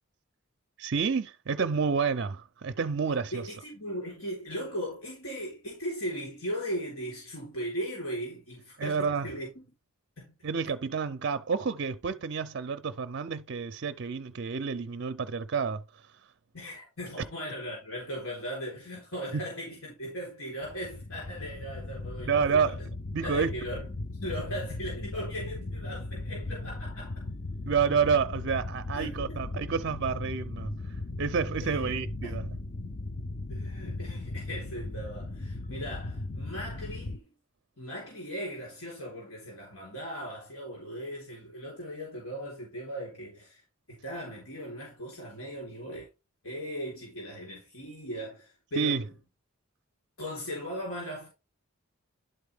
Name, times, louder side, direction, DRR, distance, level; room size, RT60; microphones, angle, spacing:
voice 1, 0.8-3.4 8.8-9.3 10.4-15.8 19.3-19.4 22.2-22.8 23.1-23.5 27.7-30.7 31.2-32.4 48.8-49.0, right 5 dB, 55° right, 0.5 m, -29 dB
voice 2, 3.3-9.5 10.2-10.3 16.5-22.8 23.2-23.9 24.2-27.3 28.9-29.5 31.6-32.0 32.2-32.4 33.5-37.3 37.8-43.6 43.9-46.1 46.4-49.0 50.2-51.3, equal, 80° left, 4.0 m, -38 dB
sound 1, 20.6-37.2, left 2 dB, 35° left, 0.4 m, -37 dB
11.0 x 4.2 x 3.5 m
head